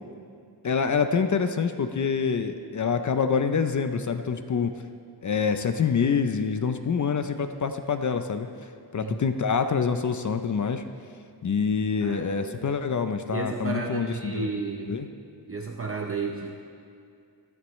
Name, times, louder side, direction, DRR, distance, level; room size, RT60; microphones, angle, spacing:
voice 1, 0.6-4.7 5.2-8.5 8.9-10.8 11.4-14.5 14.9-15.1, left 6 dB, 45° left, 8 dB, 0.5 m, -26 dB
voice 2, 12.0-12.6 13.3-15.0 15.5-16.6, right 4 dB, 35° right, 1 dB, 0.7 m, -32 dB
16.0 x 14.0 x 3.1 m, 2.3 s
wide cardioid pair, 155°, 41 cm